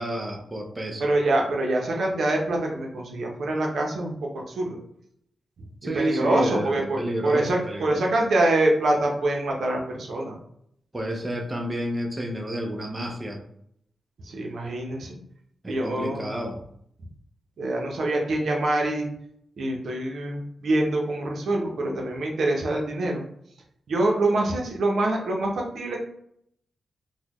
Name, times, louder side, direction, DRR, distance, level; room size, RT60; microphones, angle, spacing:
voice 1, 0.0-1.1 5.8-8.0 10.9-13.4 15.6-16.6, right 1 dB, 25° right, 2 dB, 0.6 m, -30 dB
voice 2, 1.0-4.8 5.9-10.4 14.2-15.2 15.7-16.3 17.6-19.1 19.6-23.2 23.9-26.0, right 2 dB, 70° right, 0 dB, 0.7 m, -25 dB
3.8 x 2.2 x 3.0 m, 0.71 s
cardioid pair, 65°, 0 cm